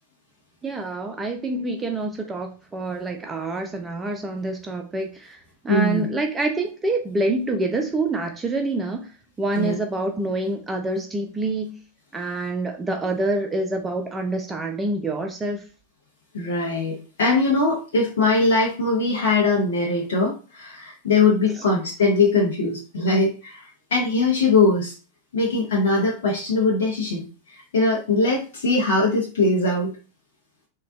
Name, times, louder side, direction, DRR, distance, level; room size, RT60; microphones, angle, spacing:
voice 1, 0.6-5.4 5.6-9.1 9.4-11.8 12.1-15.6 21.6-21.7, right 2 dB, 15° right, 0.4 m, -26 dB
voice 2, 5.7-6.1 9.5-9.7 16.3-24.9 25.3-29.9, left 3 dB, 60° left, 0.7 m, -21 dB
3.7 x 2.2 x 2.4 m
figure-of-eight pair, 90°, 0 cm